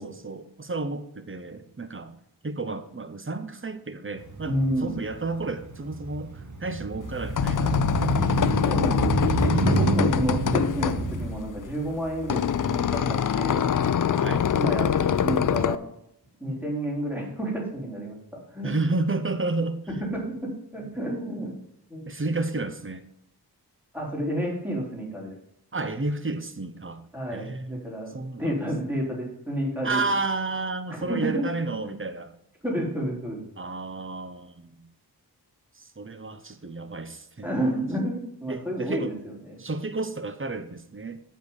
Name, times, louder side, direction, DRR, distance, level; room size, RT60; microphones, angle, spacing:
voice 1, 0.0-2.2 2.4-4.5 4.8-8.2 8.6-8.9 9.7-9.9 14.2-14.5 16.5-16.6 18.6-19.8 22.1-23.0 25.7-27.0 27.3-27.9 28.1-28.5 29.8-32.3 33.6-34.8 35.7-37.5 38.5-39.1 39.6-41.2, right 3 dB, 30° right, 10 dB, 0.9 m, -31 dB
Motorcycle, 4.2-11.3, right 2 dB, 45° right, 1.3 m, -28 dB
voice 2, 4.4-5.0 8.6-13.6 14.5-15.8 16.4-19.0 20.1-21.6 21.9-22.4 23.9-25.3 27.1-30.0 31.1-31.4 32.6-33.4 37.4-39.6, right 1 dB, 5° right, -3 dB, 3.7 m, -30 dB
sound 1, 7.0-15.8, left 8 dB, 50° left, 0.5 m, -25 dB
8.1 x 4.5 x 7.1 m, 0.77 s
wide cardioid pair, 60°, 40 cm